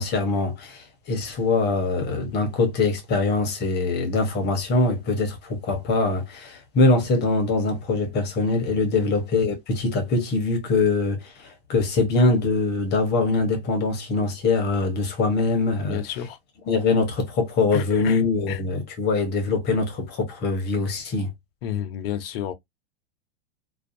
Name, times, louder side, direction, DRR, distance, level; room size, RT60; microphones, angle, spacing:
voice 1, 0.0-16.0 16.7-21.3, left 3 dB, 30° left, 0.9 m, -23 dB
voice 2, 15.8-16.4 17.7-18.6 21.6-22.5, left 10 dB, 65° left, 0.7 m, -31 dB
2.6 x 2.3 x 2.5 m
hypercardioid pair, 120°, 32 cm